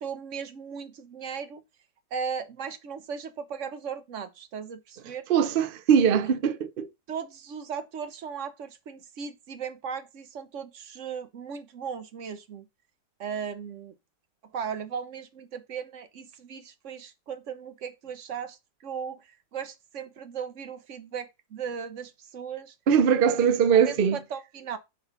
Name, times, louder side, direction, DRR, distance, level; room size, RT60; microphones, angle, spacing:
voice 1, 0.0-1.6 2.1-5.3 7.1-12.7 13.2-13.9 14.5-22.7 23.4-24.8, right 6 dB, 55° right, 1.0 m, -37 dB
voice 2, 5.3-6.9 22.9-24.2, right 7 dB, 70° right, 0.5 m, -21 dB
7.2 x 3.9 x 5.9 m
omnidirectional pair, 1.8 m